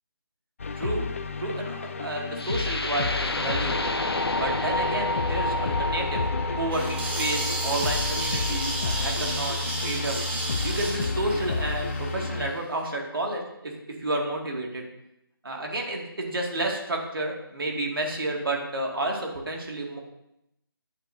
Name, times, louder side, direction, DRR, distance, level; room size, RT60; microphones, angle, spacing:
sound 1, 0.6-12.5, left 4 dB, 35° left, 0.4 m, -31 dB
voice 1, 1.4-3.9 4.4-6.2 6.6-10.2 10.6-13.7 14.0-14.8 15.4-20.0, right 2 dB, 65° right, 0 dB, 2.2 m, -31 dB
sound 2, 2.4-10.4, left 2 dB, 90° left, 0.9 m, -31 dB
sound 3, 6.7-12.5, right 2 dB, 25° right, 1.4 m, -32 dB
10.5 x 6.8 x 2.7 m, 0.82 s
figure-of-eight pair, 160°, 13 cm